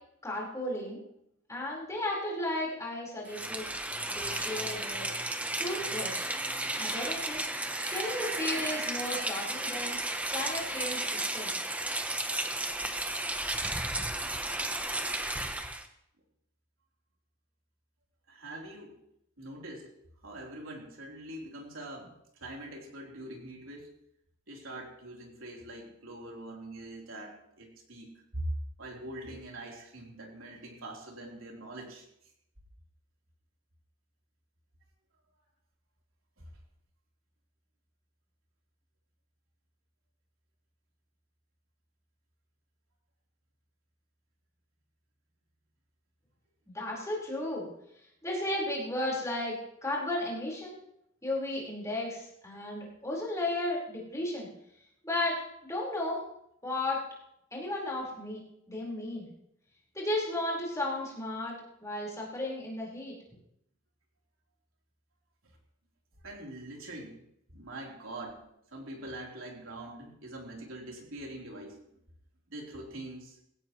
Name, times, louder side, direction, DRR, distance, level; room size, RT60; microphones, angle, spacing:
voice 1, 0.2-1.0 1.5-3.7 4.1-5.1 5.6-6.3 6.8-7.4 7.8-10.0 10.3-11.5 46.7-47.7 48.2-50.8 51.2-54.5 55.0-56.2 56.6-57.0 57.5-58.4 58.7-59.3 59.9-61.5 61.8-63.1, left 1 dB, 15° left, -4 dB, 4.5 m, -34 dB
Rain, 3.3-15.9, right 1 dB, 5° right, 0.8 m, -33 dB
voice 2, 18.3-19.0 19.4-19.9 20.2-23.9 24.5-28.5 28.8-32.0 36.4-36.5 66.2-67.2 67.5-68.4 68.7-71.8 72.5-73.4, right 1 dB, 75° right, 0 dB, 3.7 m, -43 dB
18.5 x 16.5 x 3.2 m, 0.76 s
head